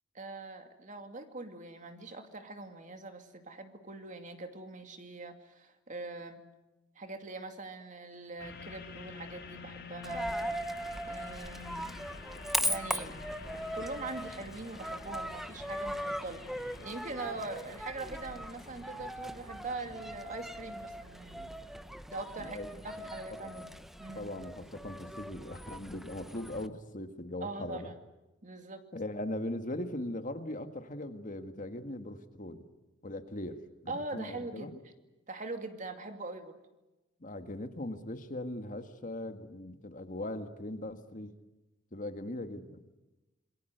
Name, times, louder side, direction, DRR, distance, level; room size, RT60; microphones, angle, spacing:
voice 1, 0.1-6.4 7.0-10.3 11.0-11.9 12.6-13.2 13.5-16.5 16.8-21.5 22.1-24.3 27.4-27.9 28.4-28.8 33.9-34.7 35.3-36.6, right 3 dB, 40° right, 6 dB, 2.5 m, -42 dB
sound 1, 8.4-23.1 23.7-23.8, left 5 dB, 60° left, 4.3 m, -50 dB
Coin (dropping), 10.0-26.7, right 1 dB, ahead, 0.9 m, -39 dB
voice 2, 22.4-22.7 22.9-23.0 23.4-23.6 24.1-27.9 28.9-32.6 33.0-34.8 37.2-41.3 41.9-42.8, left 1 dB, 45° left, 8 dB, 1.7 m, -40 dB
27.5 x 22.0 x 8.0 m, 1.0 s
head